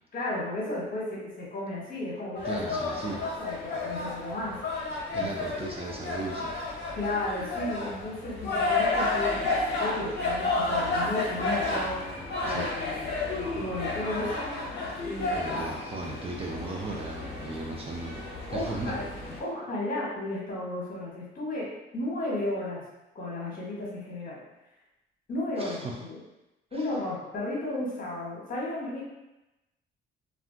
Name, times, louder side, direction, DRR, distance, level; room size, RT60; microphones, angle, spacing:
voice 1, 0.1-4.6 5.2-5.6 6.9-12.0 12.4-14.5 15.0-15.7 18.5-19.1 19.4-22.8 23.1-24.4 25.3-26.2 26.7-29.0, left 1 dB, 45° left, -5 dB, 1.1 m, -34 dB
sound 1, 2.4-19.4, left 3 dB, 60° left, 0.7 m, -31 dB
voice 2, 2.4-3.2 5.1-6.5 12.4-12.7 15.0-15.1 15.3-18.9 25.6-26.0 26.7-26.9, right 3 dB, 30° right, -1 dB, 0.4 m, -37 dB
2.3 x 2.1 x 3.6 m, 0.97 s
cardioid pair, 90°, 20 cm